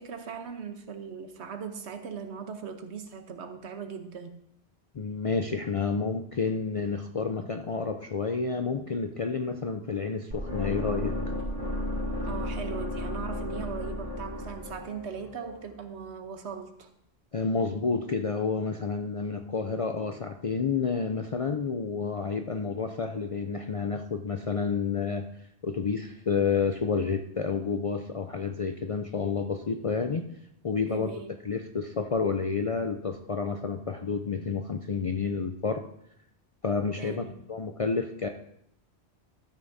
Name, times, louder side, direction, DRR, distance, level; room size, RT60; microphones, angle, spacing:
voice 1, 0.0-4.4 12.1-16.9 30.9-31.4 37.0-37.4, right 6 dB, 80° right, 7 dB, 1.2 m, -39 dB
voice 2, 4.9-11.2 17.3-25.3 25.6-30.2 30.6-31.1 31.4-35.8 36.6-38.3, left 5 dB, 50° left, 5 dB, 0.4 m, -30 dB
sound 1, 10.3-16.4, left 1 dB, 50° right, 2.6 m, -34 dB
13.0 x 9.3 x 2.7 m, 0.73 s
omnidirectional pair, 1.1 m